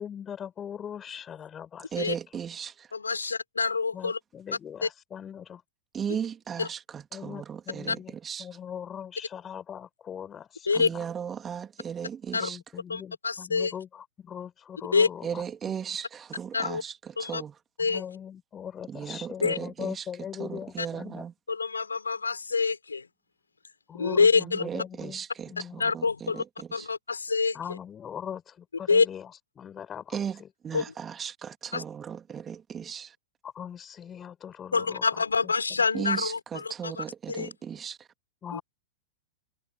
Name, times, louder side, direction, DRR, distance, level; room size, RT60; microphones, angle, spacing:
voice 1, 0.0-1.9 3.9-5.6 7.1-8.1 8.4-11.0 12.4-15.4 17.8-21.2 23.9-25.8 27.5-29.3 29.5-30.8 33.4-35.5 38.4-38.6, left 8 dB, 20° left, 5.0 m, -40 dB
voice 2, 1.9-2.9 3.2-3.3 5.9-8.5 10.7-12.6 15.2-17.5 18.9-20.1 20.4-21.3 24.4-26.9 30.1-33.1 35.9-38.1, right 7 dB, 20° right, 3.0 m, -36 dB
voice 3, 2.9-4.2 4.8-4.9 6.6-6.7 7.9-8.0 10.7-10.9 12.3-12.5 12.9-13.7 14.9-15.1 16.5-16.8 17.2-17.4 17.8-18.0 19.4-19.6 20.8-20.9 21.5-23.1 24.0-24.6 25.8-26.4 26.7-27.6 28.9-29.1 30.7-30.8 31.7-31.8 34.7-37.5 38.5-38.6, left 4 dB, 75° left, 5.4 m, -26 dB
figure-of-eight pair, 95°, 0 cm